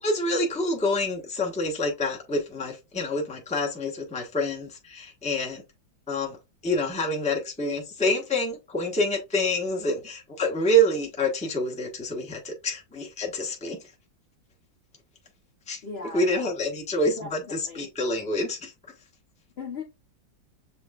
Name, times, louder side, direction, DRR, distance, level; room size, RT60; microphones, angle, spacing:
voice 1, 0.0-5.6 6.1-13.8 15.7-15.8 16.1-18.7, equal, 5° left, 0.9 m, -27 dB
voice 2, 15.8-16.5 17.2-17.9 19.6-19.8, left 4 dB, 45° left, 1.0 m, -38 dB
6.8 x 3.1 x 2.4 m
omnidirectional pair, 2.0 m